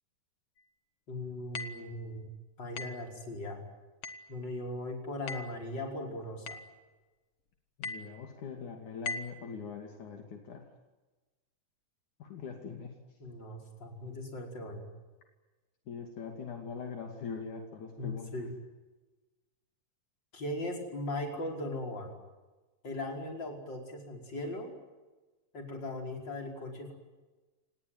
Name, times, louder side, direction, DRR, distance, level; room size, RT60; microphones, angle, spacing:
voice 1, 1.1-2.3 2.6-3.6 4.3-6.6 13.2-14.8 18.0-18.5 20.3-22.2 22.8-24.7 25.5-26.9, left 1 dB, 35° left, 2 dB, 5.7 m, -38 dB
sound 1, 1.5-1.9 2.8-3.1 4.0-4.3 5.3-5.6 6.5-6.8 7.8-8.2 9.1-9.4, left 3 dB, 50° left, 2.2 m, -40 dB
voice 2, 7.8-10.7 12.2-12.9 15.9-18.3, left 5 dB, 65° left, 3 dB, 3.9 m, -42 dB
30.0 x 18.5 x 9.4 m, 1.2 s
omnidirectional pair, 3.7 m